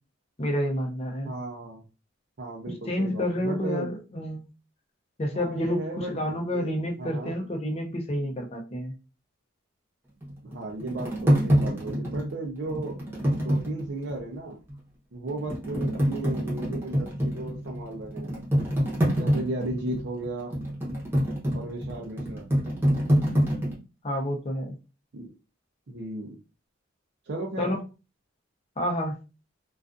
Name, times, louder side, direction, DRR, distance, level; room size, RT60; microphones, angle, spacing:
voice 1, 0.4-1.3 2.9-4.5 5.2-8.9 24.0-24.7 27.6-27.8 28.8-29.2, equal, 30° left, 0.5 m, -29 dB
voice 2, 1.2-1.8 2.4-3.9 5.3-6.7 7.0-7.3 10.4-13.0 13.4-14.6 15.1-18.3 19.1-20.5 21.5-22.5 25.1-25.3 25.9-26.4 27.3-27.7, right 2 dB, 55° right, 0.5 m, -35 dB
sound 1, 10.2-14.2 14.7-14.8 15.3-23.7, equal, 10° right, 0.8 m, -26 dB
2.4 x 2.3 x 2.4 m
head